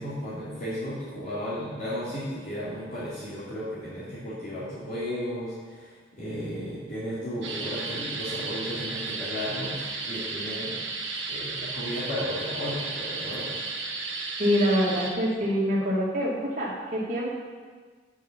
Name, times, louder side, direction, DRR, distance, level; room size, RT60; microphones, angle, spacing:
voice 1, 0.0-10.8 11.3-13.5, equal, 45° left, -11 dB, 3.2 m, -34 dB
sound 1, 7.4-15.1, right 3 dB, 70° right, 1.7 m, -34 dB
voice 2, 14.4-17.3, equal, 45° right, -4 dB, 2.5 m, -25 dB
8.9 x 7.1 x 7.4 m, 1.5 s
head